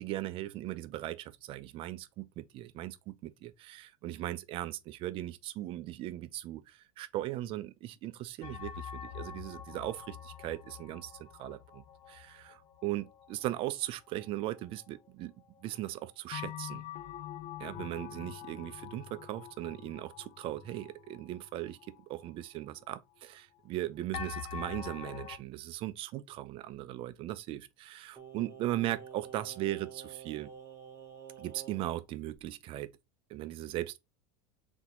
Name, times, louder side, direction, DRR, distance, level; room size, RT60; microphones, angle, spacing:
voice 1, 0.0-15.3 15.6-16.8 17.6-30.5 31.4-32.9 33.3-34.0, right 15 dB, 40° right, 0.5 m, -38 dB
sound 1, 8.4-15.2 15.6-15.7 16.3-22.3 22.8-22.9 24.1-25.4, left 10 dB, 40° left, 0.6 m, -45 dB
Singing, 28.2-32.0 32.3-32.4, right 8 dB, 20° right, 0.9 m, -49 dB
4.1 x 3.5 x 2.9 m
supercardioid pair, 160°, 15 cm